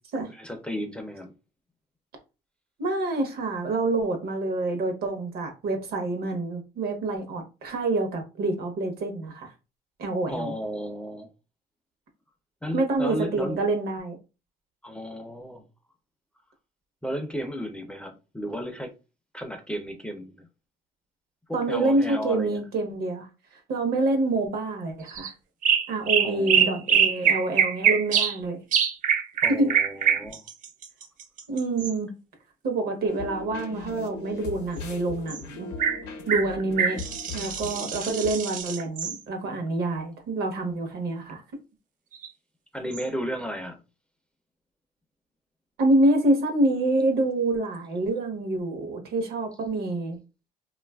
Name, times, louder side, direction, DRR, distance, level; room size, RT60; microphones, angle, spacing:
voice 1, 0.3-1.3 10.3-11.3 12.6-13.6 14.8-15.6 17.0-18.9 19.3-20.5 21.5-22.6 26.2-26.8 29.4-30.4 42.7-43.8, equal, 5° left, 0.4 m, -34 dB
voice 2, 2.8-9.5 10.0-10.5 12.7-14.2 21.5-23.3 23.7-25.3 25.9-28.6 29.5-29.7 31.5-32.1 32.6-35.7 36.3-37.0 37.3-41.4 45.8-50.2, right 2 dB, 65° right, 0.8 m, -27 dB
sound 1, 25.1-25.3 25.6-28.4 28.7-31.9 35.3-35.4 35.8-36.0 36.3-39.2 42.1-42.3 42.9-43.0, right 7 dB, 50° right, 0.4 m, -24 dB
sound 2, 33.1-38.3, left 3 dB, 85° left, 0.6 m, -38 dB
2.7 x 2.3 x 2.2 m
cardioid pair, 110°, 17 cm